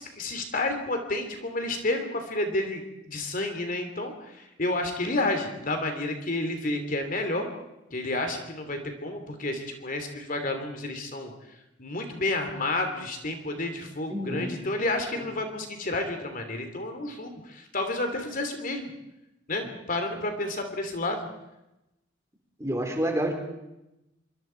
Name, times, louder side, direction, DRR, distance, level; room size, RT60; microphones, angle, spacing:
voice 1, 0.0-2.8 3.1-7.5 7.9-11.3 11.8-18.9 19.5-21.3, left 2 dB, 45° left, 5 dB, 3.1 m, -30 dB
voice 2, 14.1-14.5 22.6-23.3, right 1 dB, 15° right, 2 dB, 4.2 m, -28 dB
25.5 x 24.5 x 4.6 m, 0.91 s
head